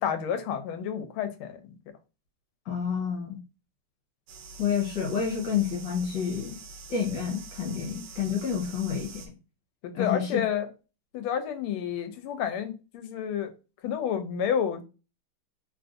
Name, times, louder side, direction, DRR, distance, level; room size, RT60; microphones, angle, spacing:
voice 1, 0.0-1.8 9.8-10.7 11.1-13.5 13.8-14.9, left 8 dB, 90° left, 1.5 m, -30 dB
voice 2, 2.6-3.4 4.6-6.6 6.9-9.1 9.9-10.4, left 7 dB, 65° left, 1.5 m, -29 dB
sound 1, 4.3-9.3, right 4 dB, 90° right, 1.5 m, -45 dB
3.7 x 2.5 x 2.5 m
omnidirectional pair, 2.3 m